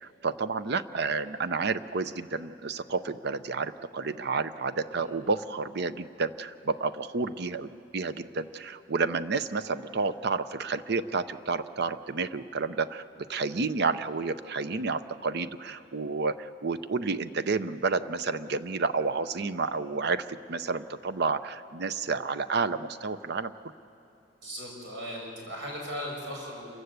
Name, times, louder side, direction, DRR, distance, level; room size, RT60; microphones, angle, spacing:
voice 1, 0.0-23.5, right 4 dB, 60° right, 13 dB, 0.6 m, -30 dB
voice 2, 24.4-26.7, equal, 85° right, -1 dB, 6.2 m, -38 dB
27.5 x 14.5 x 8.2 m, 2.7 s
head